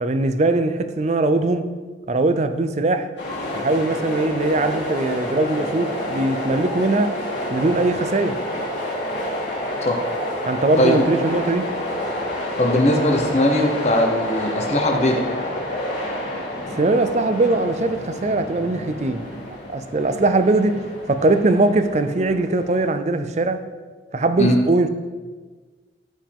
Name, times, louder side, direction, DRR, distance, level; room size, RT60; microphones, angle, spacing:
voice 1, 0.0-1.7 2.1-3.1 3.5-7.2 7.5-8.4 10.5-11.7 16.8-19.3 19.7-23.6 24.1-24.9, right 2 dB, 35° right, 10 dB, 0.5 m, -21 dB
sound 1, 3.2-22.9, left 1 dB, 75° left, 2.8 m, -29 dB
voice 2, 12.6-15.2 24.4-24.6, left 1 dB, 35° left, 2 dB, 1.1 m, -19 dB
14.0 x 5.5 x 3.6 m, 1.4 s
head